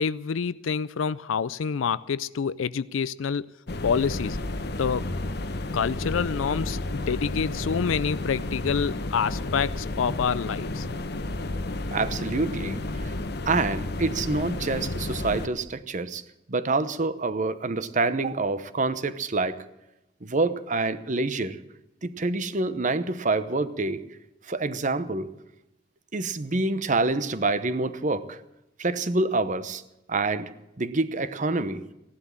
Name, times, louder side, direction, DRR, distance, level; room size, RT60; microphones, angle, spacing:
voice 1, 0.0-3.5 3.8-4.4 4.8-5.1 5.7-10.9, left 6 dB, 90° left, 0.4 m, -27 dB
sound 1, 3.7-15.5, left 2 dB, 55° left, 1.0 m, -31 dB
voice 2, 11.9-13.1 13.5-16.2 16.5-19.6 20.2-21.6 22.0-24.0 24.5-25.3 26.1-28.4 28.8-29.8 30.1-30.5 30.8-31.8, right 3 dB, 40° right, 0.9 m, -27 dB
16.0 x 11.5 x 7.4 m
head